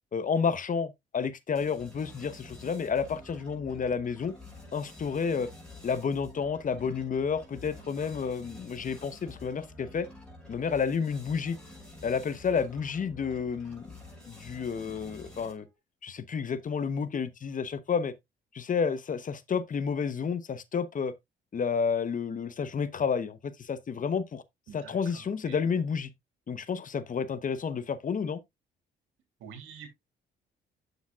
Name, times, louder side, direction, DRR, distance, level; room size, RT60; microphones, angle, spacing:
voice 1, 0.1-4.4 4.7-5.5 5.8-10.1 10.5-11.6 12.0-14.0 14.3-15.7 16.0-18.1 18.5-21.1 21.5-24.4 24.7-26.1 26.5-28.4, left 6 dB, 40° left, 0.9 m, -30 dB
sound 1, 1.5-15.8, left 2 dB, 5° left, 5.4 m, -49 dB
voice 2, 24.7-25.6 29.4-29.9, right 7 dB, 90° right, 2.7 m, -47 dB
9.6 x 7.1 x 2.4 m
cardioid pair, 90°, 20 cm